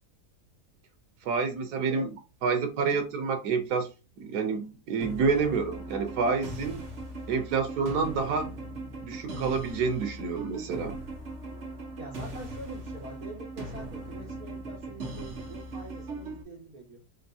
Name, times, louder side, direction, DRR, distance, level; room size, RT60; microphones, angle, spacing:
voice 1, 1.2-2.1 2.4-3.9 4.2-6.8 7.3-8.5 9.0-10.9, right 5 dB, 90° right, 1.4 m, -28 dB
voice 2, 1.8-2.1 2.8-3.0 12.0-17.0, right 1 dB, 70° right, 1.6 m, -44 dB
sound 1, 5.0-16.4, right 2 dB, 50° right, 1.4 m, -39 dB
4.4 x 2.6 x 2.7 m
omnidirectional pair, 1.7 m